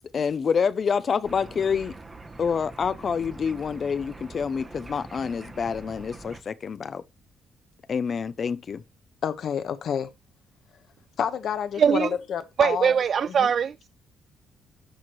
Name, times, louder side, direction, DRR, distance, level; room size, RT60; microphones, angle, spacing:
voice 1, 0.0-1.9 2.4-7.0 7.9-8.8, left 6 dB, 45° left, 0.6 m, -27 dB
sound 1, 1.2-6.4, right 2 dB, 25° right, 1.0 m, -44 dB
voice 2, 9.2-10.1 11.2-12.9 13.3-13.5, left 8 dB, 65° left, 1.1 m, -29 dB
voice 3, 11.8-12.1 12.6-13.9, right 7 dB, 55° right, 0.4 m, -21 dB
13.0 x 4.5 x 3.1 m
cardioid pair, 90°, 0 cm